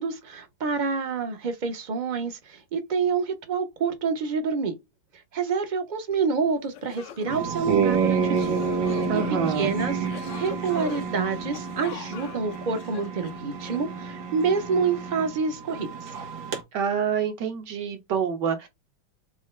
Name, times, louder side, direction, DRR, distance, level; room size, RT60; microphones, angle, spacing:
voice 1, 0.0-4.8 5.3-9.2 9.5-16.1, right 5 dB, 35° right, 0.7 m, -28 dB
sound 1, 6.3-6.4 6.7-13.8, left 10 dB, 75° left, 1.3 m, -44 dB
sound 2, 7.3-16.6, right 6 dB, 85° right, 2.1 m, -29 dB
voice 2, 9.1-9.7 16.7-18.7, right 7 dB, 65° right, 1.8 m, -27 dB
6.1 x 2.2 x 3.2 m
omnidirectional pair, 2.0 m